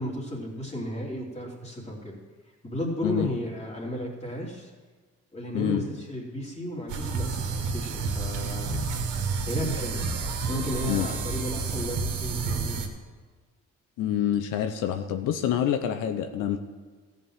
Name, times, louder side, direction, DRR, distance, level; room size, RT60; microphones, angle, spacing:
voice 1, 0.0-2.2 2.6-4.7 5.3-10.1 10.4-12.9, equal, 20° left, -2 dB, 3.1 m, -34 dB
sound 1, 6.9-12.9, right 4 dB, 80° right, 1.6 m, -30 dB
voice 2, 14.0-16.6, left 10 dB, 85° left, 7 dB, 0.7 m, -27 dB
14.5 x 5.3 x 7.7 m, 1.4 s
cardioid pair, 90°, 30 cm